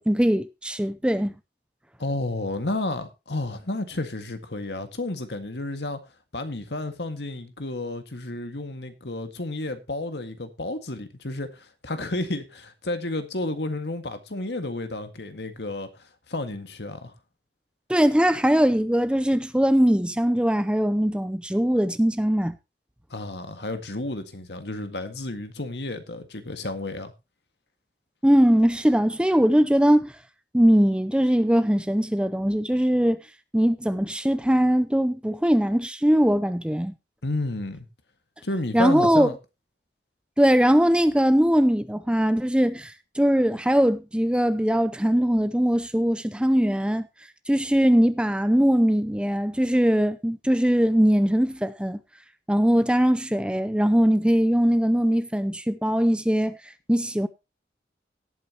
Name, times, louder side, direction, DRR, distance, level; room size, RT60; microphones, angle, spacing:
voice 1, 0.0-1.3 17.9-22.6 28.2-30.1 30.5-33.2 33.5-36.9 38.7-39.3 40.4-47.1 47.5-52.0 52.5-56.6 56.9-57.3, equal, 5° right, 0.5 m, -21 dB
voice 2, 2.0-6.0 6.3-17.1 23.1-27.1 37.2-37.9 38.4-39.3, left 2 dB, 80° left, 1.8 m, -31 dB
17.5 x 8.8 x 2.9 m
head